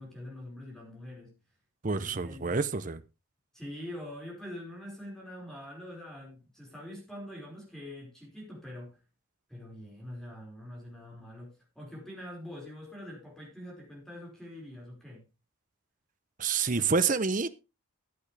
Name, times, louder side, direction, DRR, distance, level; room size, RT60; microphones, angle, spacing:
voice 1, 0.0-1.3 1.9-2.6 3.5-9.0 9.5-15.2, left 1 dB, ahead, 5.1 m, -44 dB
voice 2, 1.8-3.0 16.4-17.5, right 4 dB, 40° right, 0.7 m, -28 dB
15.0 x 8.8 x 3.4 m
head